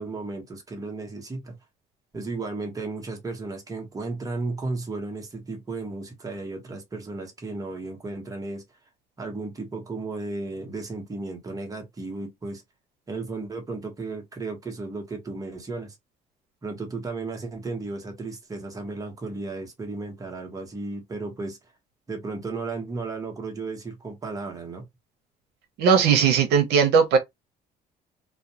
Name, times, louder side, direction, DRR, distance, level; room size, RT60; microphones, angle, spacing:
voice 1, 0.0-1.5 2.1-8.6 9.2-12.6 13.1-15.9 16.6-21.6 22.1-24.9, right 3 dB, 20° right, 1.0 m, -34 dB
voice 2, 25.8-27.2, right 6 dB, 85° right, 0.7 m, -18 dB
2.4 x 2.2 x 2.8 m
cardioid pair, 110°, 17 cm